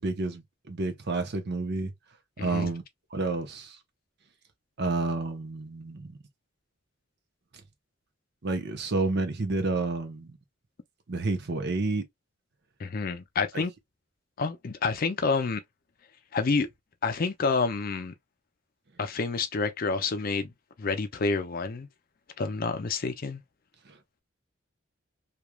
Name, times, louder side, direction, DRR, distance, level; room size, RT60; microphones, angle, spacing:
voice 1, 0.0-1.9 2.4-2.8 3.1-3.8 4.8-6.2 8.4-10.3 11.1-12.1 23.9-24.0, right 3 dB, 60° right, 0.7 m, -30 dB
voice 2, 2.4-2.7 12.8-13.7 14.4-15.6 16.3-16.7 17.0-18.1 19.0-20.5 20.8-21.9 22.4-23.4, left 4 dB, 50° left, 0.5 m, -28 dB
3.1 x 2.4 x 2.2 m
head